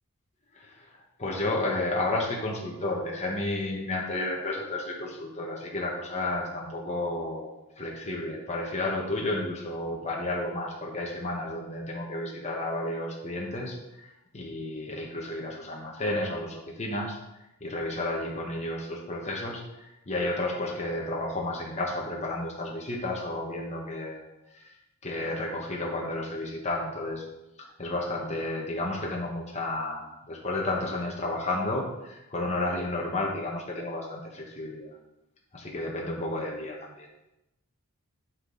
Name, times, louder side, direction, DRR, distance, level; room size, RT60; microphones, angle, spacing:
voice 1, 0.5-0.9 1.2-14.1 14.3-17.2 17.6-24.2 24.5-24.6 25.0-27.2 27.6-34.9 35.5-37.1, left 2 dB, 30° left, -2 dB, 1.3 m, -32 dB
9.0 x 6.0 x 4.0 m, 0.89 s
head